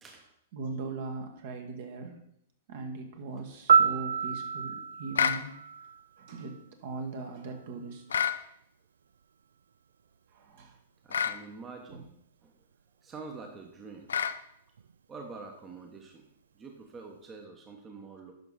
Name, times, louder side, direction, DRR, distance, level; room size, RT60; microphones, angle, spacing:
voice 1, 0.5-2.2 2.7-5.5 6.2-6.5 6.8-8.3 10.3-10.8 11.9-12.0, right 3 dB, 50° right, 4 dB, 1.5 m, -39 dB
Piano, 3.7-6.6 14.8-15.0, right 6 dB, 65° right, 0.3 m, -27 dB
sound 1, 5.1-5.4 8.1-8.4 11.1-11.4 14.1-14.4, left 7 dB, 70° left, 0.5 m, -28 dB
voice 2, 11.0-12.1 12.4-12.5 13.0-14.2 15.1-16.3 16.6-18.3, right 4 dB, 20° right, 3 dB, 1.1 m, -46 dB
10.5 x 6.0 x 4.0 m, 0.73 s
figure-of-eight pair, 105°, 0 cm